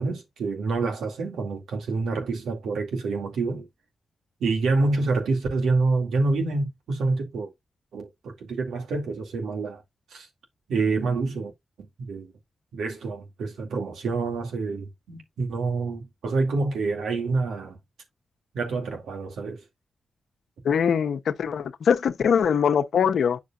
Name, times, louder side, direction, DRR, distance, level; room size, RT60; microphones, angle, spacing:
voice 1, 0.0-3.7 4.4-7.5 7.9-9.8 10.1-10.3 10.7-11.5 12.1-12.3 12.7-17.8 18.5-19.6, right 3 dB, 90° right, 2.4 m, -27 dB
voice 2, 20.6-23.4, left 7 dB, 80° left, 0.8 m, -22 dB
8.4 x 6.7 x 2.5 m
supercardioid pair, 45°, 0 cm